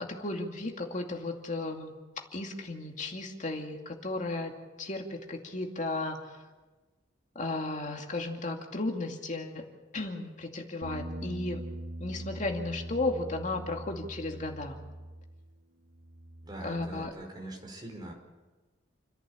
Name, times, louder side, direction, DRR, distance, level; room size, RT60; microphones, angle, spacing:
voice 1, 0.0-1.9 2.3-4.5 4.8-6.2 7.4-9.6 9.9-11.6 12.0-14.8 16.6-17.1, left 2 dB, 45° left, 3 dB, 2.5 m, -34 dB
Bass guitar, 10.8-15.6 15.9-17.1, right 1 dB, 80° right, 2.4 m, -42 dB
voice 2, 16.4-18.1, right 1 dB, 25° right, 1 dB, 5.1 m, -43 dB
29.5 x 11.0 x 8.9 m, 1.2 s
head